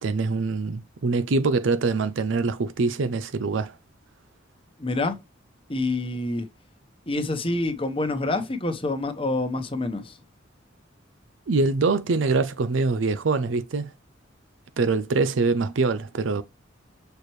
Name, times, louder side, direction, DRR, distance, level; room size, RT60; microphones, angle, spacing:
voice 1, 0.0-3.7 11.5-13.9 14.8-16.4, right 3 dB, 80° right, 0.5 m, -24 dB
voice 2, 4.8-5.2 5.7-6.5 7.1-10.2, left 2 dB, 30° left, 1.0 m, -27 dB
6.7 x 4.5 x 3.1 m
head